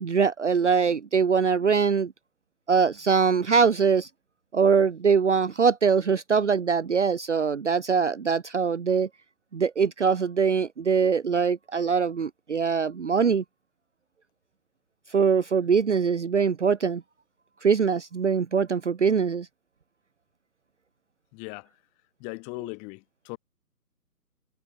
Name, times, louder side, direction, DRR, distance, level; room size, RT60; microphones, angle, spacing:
voice 1, 0.0-2.1 2.7-4.1 4.5-9.1 9.5-13.4 15.1-17.0 17.6-19.5, right 6 dB, 45° right, 0.8 m, -23 dB
voice 2, 21.3-21.7 22.2-23.4, left 34 dB, 15° left, 6.0 m, -38 dB
figure-of-eight pair, 145°, 48 cm